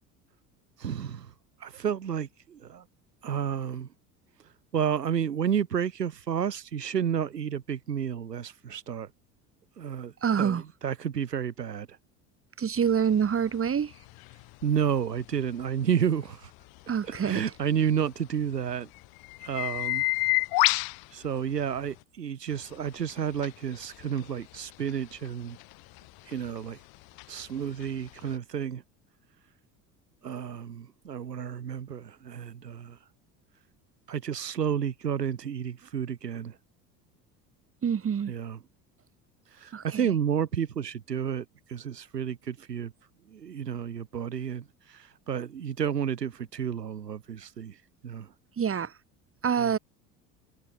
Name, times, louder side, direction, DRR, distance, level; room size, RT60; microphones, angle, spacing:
voice 1, 0.8-1.3 1.6-2.8 3.2-3.9 4.7-9.1 9.8-10.1 10.4-11.9 14.6-16.5 17.0-18.9 19.4-20.0 21.1-25.6 26.3-26.8 27.3-28.8 30.2-33.0 34.1-36.6 38.3-38.6 39.6-42.9 43.3-47.8 48.0-48.3 49.6-49.7, right 8 dB, 90° right, 1.1 m, -31 dB
voice 2, 10.2-10.6 12.6-13.9 16.9-17.4 37.8-38.3 39.7-40.1 48.6-48.9 49.4-49.8, right 7 dB, 30° right, 2.3 m, -26 dB
sound 1, 12.8-22.0 22.5-28.4, left 24 dB, 50° left, 0.9 m, -34 dB
figure-of-eight pair, 65°, 47 cm